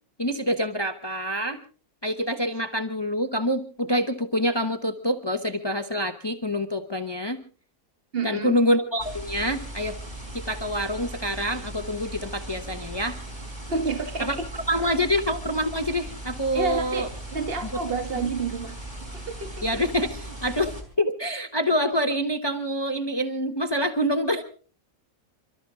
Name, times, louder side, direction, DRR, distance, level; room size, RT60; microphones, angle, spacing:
voice 1, 0.2-1.6 2.0-7.4 8.2-10.0 10.3-13.2 14.2-14.4 14.7-17.1 18.1-18.2 19.6-24.4, equal, 20° left, 8 dB, 0.9 m, -26 dB
voice 2, 8.1-8.6 13.7-14.5 16.5-18.8 19.1-19.8, right 4 dB, 40° right, 7 dB, 2.1 m, -30 dB
sound 1, 9.0-20.8, right 1 dB, 20° right, 4.2 m, -38 dB
29.0 x 13.0 x 3.7 m, 0.39 s
omnidirectional pair, 1.5 m